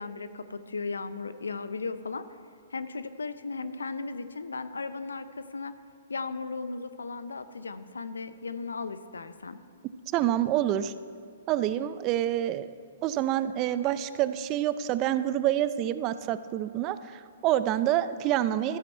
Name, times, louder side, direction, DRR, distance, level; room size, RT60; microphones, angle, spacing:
voice 1, 0.0-2.3 2.7-5.7 6.1-9.6, left 4 dB, 90° left, 12 dB, 0.5 m, -36 dB
voice 2, 10.1-10.9 11.5-12.7 13.0-18.8, right 12 dB, 35° right, 13 dB, 0.4 m, -27 dB
13.0 x 8.3 x 4.4 m, 2.3 s
hypercardioid pair, 125°, 0 cm